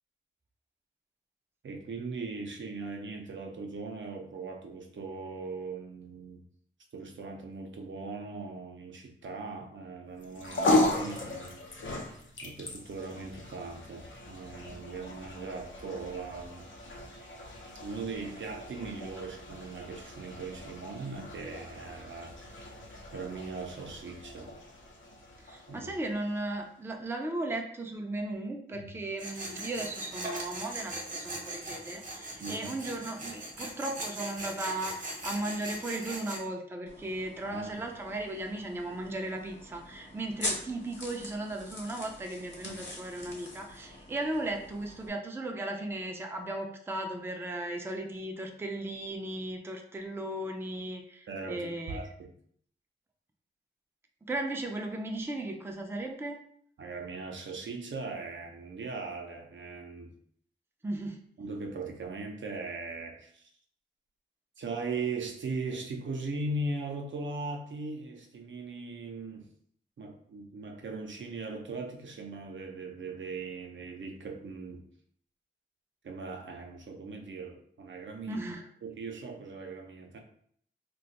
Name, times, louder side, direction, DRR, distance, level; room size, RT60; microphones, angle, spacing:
voice 1, 1.6-6.4 6.9-11.6 12.4-16.7 17.8-22.3 23.1-24.5 25.7-25.9 28.7-28.9 32.4-32.7 37.4-37.7 51.3-52.3 56.8-60.1 61.4-63.5 64.6-69.5 70.0-74.8 76.0-78.5 78.8-80.2, right 3 dB, 75° right, 2 dB, 0.5 m, -39 dB
sound 1, 10.2-26.7, left 2 dB, 90° left, 0.6 m, -36 dB
voice 2, 25.4-52.0 54.3-56.4 60.8-61.2 78.3-78.6, right 1 dB, 10° right, 3 dB, 0.4 m, -36 dB
Tools, 29.2-36.4, right 1 dB, 40° right, 0.7 m, -40 dB
sound 2, 36.9-45.1, left 1 dB, 70° left, 1.0 m, -43 dB
2.4 x 2.2 x 4.0 m, 0.64 s
wide cardioid pair, 115°, 19 cm